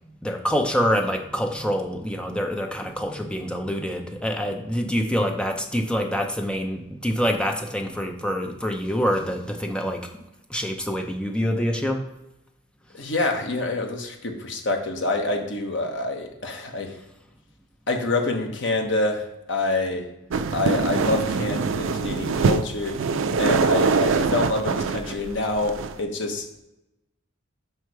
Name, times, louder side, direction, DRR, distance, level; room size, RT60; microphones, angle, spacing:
voice 1, 0.2-10.2 10.5-12.0, equal, 5° left, 3 dB, 0.6 m, -26 dB
voice 2, 12.9-17.0 17.9-20.1 20.5-23.0 23.4-26.6, left 2 dB, 60° left, 3 dB, 1.0 m, -26 dB
sound 1, 20.3-26.0, right 4 dB, 70° right, 0.4 m, -24 dB
5.6 x 4.5 x 4.6 m, 0.92 s
head